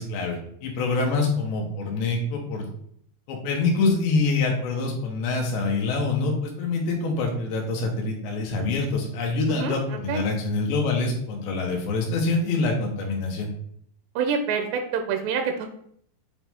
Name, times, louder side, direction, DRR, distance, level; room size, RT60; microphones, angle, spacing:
voice 1, 0.0-2.7 3.3-13.5, left 3 dB, 85° left, 0 dB, 3.3 m, -25 dB
voice 2, 9.5-10.2 14.2-15.7, right 6 dB, 85° right, 5 dB, 2.8 m, -27 dB
8.7 x 3.1 x 3.5 m, 0.65 s
omnidirectional pair, 4.8 m